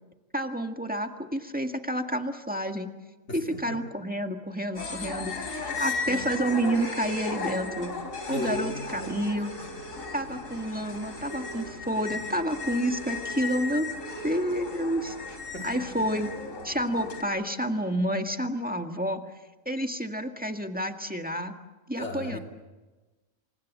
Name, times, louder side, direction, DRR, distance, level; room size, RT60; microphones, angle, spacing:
voice 1, 0.3-2.9 3.3-7.9 8.3-9.5 10.1-13.9 14.2-15.2 15.6-16.3 16.6-19.2 19.7-21.6 21.9-22.4, equal, 5° right, 5 dB, 1.7 m, -29 dB
voice 2, 3.3-3.8 5.8-6.2 8.3-9.1 15.5-16.1 22.0-22.4, left 1 dB, 60° left, 2 dB, 3.6 m, -36 dB
sound 1, 4.7-17.2, left 3 dB, 80° left, 3.9 m, -36 dB
28.0 x 24.5 x 7.3 m, 1.2 s
omnidirectional pair, 1.4 m